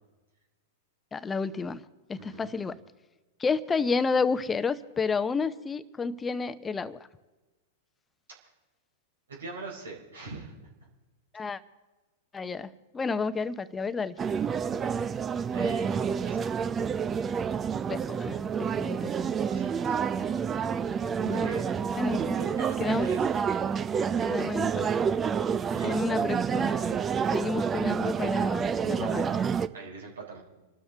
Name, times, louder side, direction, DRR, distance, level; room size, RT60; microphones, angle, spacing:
voice 1, 1.1-1.8 2.1-2.8 3.4-7.0 11.3-11.6 12.3-12.7 12.9-14.1 17.9-19.1 21.2-21.5 22.0-22.4 22.8-23.1 24.3-25.1 25.8-27.0 27.3-29.3, left 4 dB, 15° left, 13 dB, 0.8 m, -30 dB
voice 2, 2.2-2.5 8.4-8.5 9.3-10.7 15.5-16.6 19.3-20.0 21.3-21.7 22.2-23.3 25.6-26.3 28.9-29.3 29.7-30.4, right 3 dB, 75° right, 0 dB, 4.1 m, -42 dB
sound 1, 14.2-29.7, right 6 dB, 25° right, 0.6 m, -28 dB
26.5 x 13.0 x 3.5 m, 1.1 s
figure-of-eight pair, 100°, 0 cm